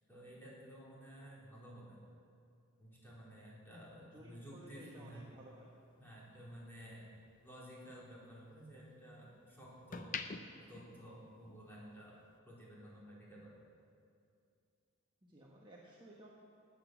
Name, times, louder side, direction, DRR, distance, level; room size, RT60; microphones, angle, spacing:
voice 1, 0.1-2.0 2.8-5.3 6.0-7.1 7.4-10.1 10.6-12.2 12.5-13.6, equal, 10° left, -7 dB, 3.7 m, -53 dB
voice 2, 4.1-5.7 15.2-16.3, right 1 dB, 20° right, -4 dB, 1.4 m, -56 dB
sound 1, 5.1-7.4 7.8-9.2 9.7-11.8 12.1-12.4, left 5 dB, 40° left, 0.6 m, -48 dB
19.5 x 8.3 x 6.1 m, 2.4 s
head